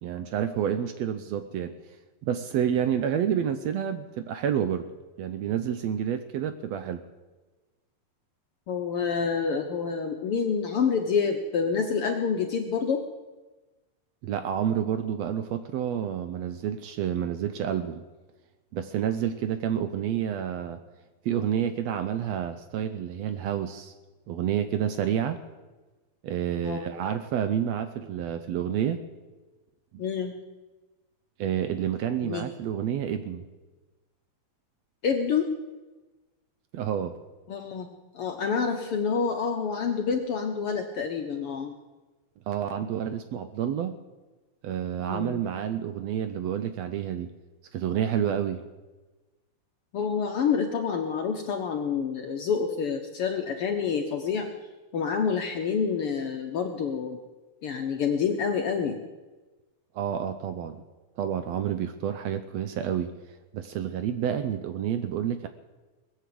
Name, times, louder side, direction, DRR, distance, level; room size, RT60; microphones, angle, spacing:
voice 1, 0.0-1.7 2.2-4.9 5.2-7.0 14.2-18.0 18.7-20.8 21.2-23.9 24.3-25.4 26.2-29.0 31.4-33.4 36.7-37.2 42.5-43.9 44.6-47.3 47.7-48.6 59.9-60.8 61.2-63.1 63.5-65.5, right 9 dB, 75° right, 9 dB, 1.6 m, -29 dB
voice 2, 8.7-13.0 26.6-26.9 30.0-30.4 32.2-32.5 35.0-35.4 37.5-37.9 38.1-41.7 45.0-45.4 49.9-54.5 54.9-57.2 57.6-59.0, left 6 dB, 70° left, 4 dB, 1.4 m, -28 dB
20.0 x 8.2 x 7.7 m, 1.2 s
omnidirectional pair, 3.5 m